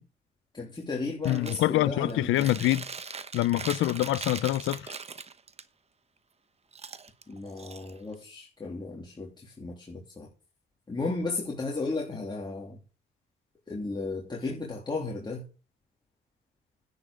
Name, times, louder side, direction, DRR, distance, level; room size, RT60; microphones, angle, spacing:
voice 1, 0.5-2.5 7.3-10.3 10.9-12.8 13.7-15.5, left 3 dB, 20° left, 3.1 m, -34 dB
voice 2, 1.2-2.9 3.3-4.9, left 15 dB, 85° left, 0.7 m, -25 dB
Chewing mastication, 1.2-1.7 2.1-5.6 6.7-8.2, right 5 dB, 30° right, 1.0 m, -40 dB
10.5 x 9.7 x 5.2 m
cardioid pair, 90°, 20 cm